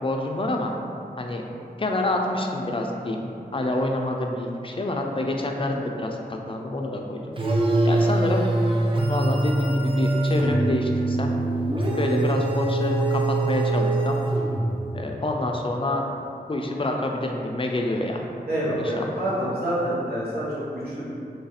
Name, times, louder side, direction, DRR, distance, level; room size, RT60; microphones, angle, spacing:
voice 1, 0.0-0.7 1.2-1.4 1.8-3.3 3.5-7.2 7.5-7.6 7.8-8.5 9.1-11.3 12.0-14.2 14.9-16.0 16.5-18.3 18.8-19.1, left 1 dB, 35° left, 2 dB, 0.4 m, -27 dB
sound 1, 7.4-14.8, right 2 dB, 35° right, 0.5 m, -23 dB
voice 2, 18.5-21.1, equal, 75° right, -9 dB, 1.1 m, -27 dB
3.2 x 2.4 x 4.1 m, 2.6 s
wide cardioid pair, 50°, 16 cm